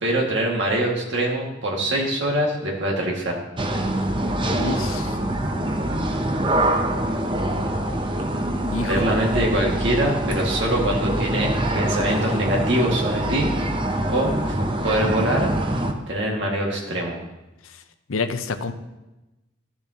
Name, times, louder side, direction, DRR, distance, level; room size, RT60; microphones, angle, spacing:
voice 1, 0.0-3.4 8.8-13.5 14.1-15.5 16.1-17.2, right 1 dB, 60° right, -1 dB, 2.0 m, -24 dB
sound 1, 3.6-15.9, right 1 dB, 25° right, 0.7 m, -24 dB
voice 2, 4.6-5.2 8.7-9.1 18.1-18.7, left 4 dB, 90° left, 10 dB, 0.7 m, -28 dB
14.0 x 7.0 x 2.9 m, 1.0 s
head